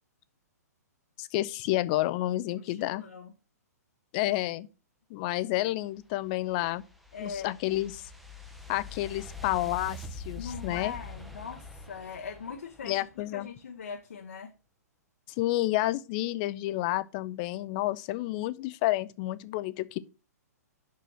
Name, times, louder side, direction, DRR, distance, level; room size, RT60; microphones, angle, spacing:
voice 1, 1.2-3.0 4.1-4.7 5.1-6.8 7.2-8.0 8.7-10.9 12.8-13.5 15.4-20.0, left 16 dB, 30° left, 0.5 m, -30 dB
voice 2, 2.5-3.3 7.1-7.6 10.4-14.5, left 6 dB, 60° left, 1.0 m, -41 dB
sound 1, 6.0-13.3, left 2 dB, ahead, 0.8 m, -44 dB
6.1 x 5.6 x 5.9 m
figure-of-eight pair, 115°, 9 cm